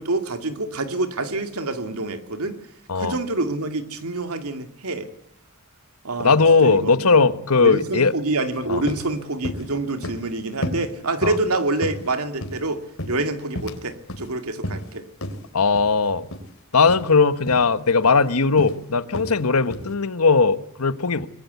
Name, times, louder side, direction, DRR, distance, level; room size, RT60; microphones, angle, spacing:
voice 1, 0.0-2.6 3.0-5.1 6.0-7.3 7.6-15.1, right 2 dB, 85° right, 8 dB, 2.4 m, -27 dB
voice 2, 6.2-8.1 8.7-8.8 11.2-11.3 15.5-16.3 16.7-21.3, left 4 dB, 90° left, 13 dB, 1.2 m, -18 dB
sound 1, 8.5-8.6 8.9-9.1 9.4-9.7 10.0-10.3 10.6-10.9 11.2-11.5 11.8-12.6 13.0-13.8 14.1-14.3 14.6-14.9 15.2-15.4 15.7-15.9 16.3-16.5 16.8-17.0 17.5-17.7 18.0-18.3 18.6-18.8 19.1-19.4 19.7-19.9, left 1 dB, 65° left, 3.1 m, -32 dB
25.0 x 20.5 x 8.2 m, 0.68 s
head